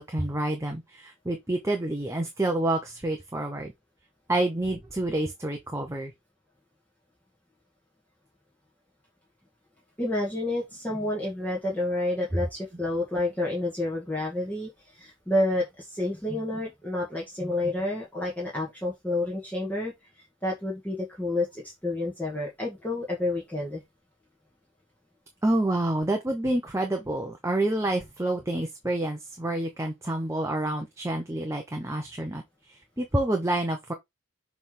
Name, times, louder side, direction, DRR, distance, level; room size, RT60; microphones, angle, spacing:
voice 1, 0.0-3.7 4.3-6.1 25.4-32.4 32.7-33.9, right 1 dB, 15° right, 0.9 m, -28 dB
voice 2, 10.0-14.7 15.0-19.9 20.4-23.8, left 1 dB, 10° left, 1.8 m, -29 dB
6.9 x 3.5 x 3.9 m
head